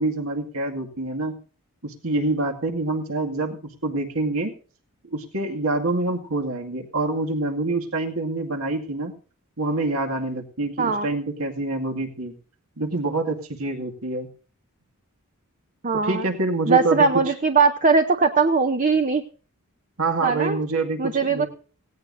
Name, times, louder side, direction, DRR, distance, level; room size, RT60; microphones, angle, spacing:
voice 1, 0.0-1.4 1.8-4.5 5.1-9.1 9.6-12.3 12.8-14.3 16.0-17.3 20.0-21.5, right 2 dB, 70° right, 4 dB, 2.2 m, -26 dB
voice 2, 15.8-16.3 16.7-19.2 20.2-20.6 21.0-21.5, right 4 dB, 35° right, 7 dB, 0.7 m, -20 dB
17.5 x 16.5 x 2.7 m, 0.40 s
head